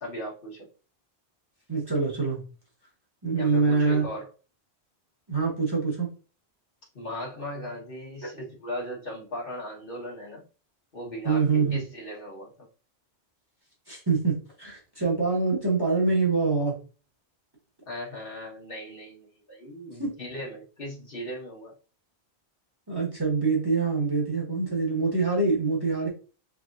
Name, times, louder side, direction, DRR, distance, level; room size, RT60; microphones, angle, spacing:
voice 1, 0.0-0.7 3.3-4.3 6.9-10.4 10.9-12.7 17.9-21.7, equal, 55° left, -3 dB, 1.5 m, -38 dB
voice 2, 1.7-2.4 3.2-4.0 5.3-6.1 11.2-11.8 13.9-16.8 20.0-20.1 22.9-26.1, right 4 dB, 20° right, -2 dB, 1.2 m, -25 dB
3.6 x 3.3 x 2.5 m, 0.35 s
omnidirectional pair, 1.1 m